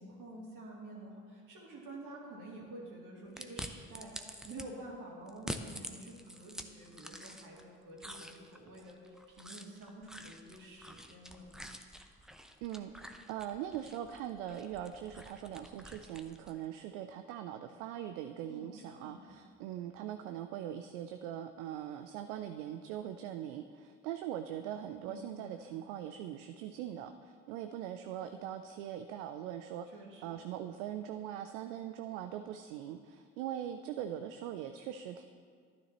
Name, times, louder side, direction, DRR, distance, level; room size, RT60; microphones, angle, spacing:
voice 1, 0.0-11.5 18.5-19.4 25.0-25.7 29.9-30.4, right 2 dB, 60° right, -3 dB, 2.7 m, -49 dB
sound 1, 3.4-4.7 5.3-7.6 8.0-16.6, equal, ahead, 0.7 m, -47 dB
voice 2, 12.6-29.9 30.2-35.2, right 10 dB, 80° right, 8 dB, 0.5 m, -41 dB
12.0 x 9.7 x 3.0 m, 2.1 s
hypercardioid pair, 60°, 36 cm